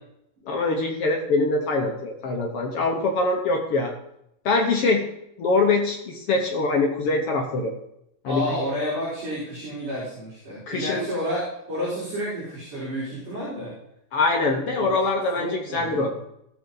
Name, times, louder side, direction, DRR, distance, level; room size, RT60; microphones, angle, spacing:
voice 1, 0.5-3.9 4.4-5.1 5.4-7.7 8.2-8.6 10.7-11.0 14.1-16.1, left 3 dB, 75° left, 1 dB, 1.3 m, -23 dB
voice 2, 8.3-13.7 14.7-14.9 15.4-16.1, equal, 55° right, -10 dB, 6.3 m, -30 dB
18.0 x 7.4 x 4.0 m, 0.80 s
omnidirectional pair, 4.3 m